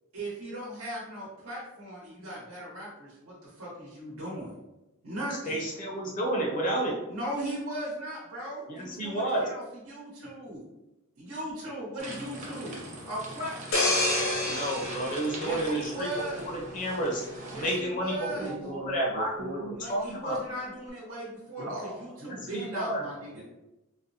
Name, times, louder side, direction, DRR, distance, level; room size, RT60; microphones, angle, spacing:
voice 1, 0.1-4.5 5.0-5.6 7.1-10.6 11.2-12.7 13.0-14.0 15.3-16.5 17.5-18.5 19.8-21.7 22.0-23.4, right 1 dB, 90° right, -6 dB, 1.0 m, -38 dB
voice 2, 5.4-7.0 8.7-9.5 14.5-16.1 16.4-17.3 17.6-19.3 19.6-20.4 22.2-23.0, right 1 dB, 35° left, -1 dB, 0.5 m, -31 dB
sound 1, 12.0-17.8, right 2 dB, 35° right, 0.8 m, -41 dB
sound 2, 13.7-16.4 16.9-17.1, left 2 dB, 70° left, 0.8 m, -29 dB
voice 3, 18.3-20.5 21.6-22.5 23.1-23.4, right 1 dB, 70° right, -1 dB, 0.7 m, -39 dB
4.0 x 2.1 x 2.7 m, 0.97 s
head